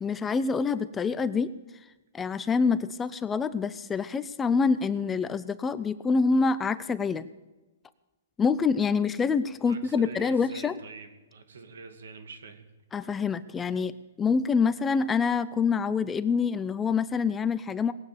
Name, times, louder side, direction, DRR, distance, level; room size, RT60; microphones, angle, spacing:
voice 1, 0.0-1.5 2.1-7.2 8.4-10.7 12.9-17.9, left 5 dB, 10° left, 14 dB, 0.4 m, -26 dB
voice 2, 9.6-12.6, right 4 dB, 80° right, 8 dB, 2.4 m, -45 dB
19.5 x 8.7 x 6.9 m, 1.1 s
hypercardioid pair, 160°, 0 cm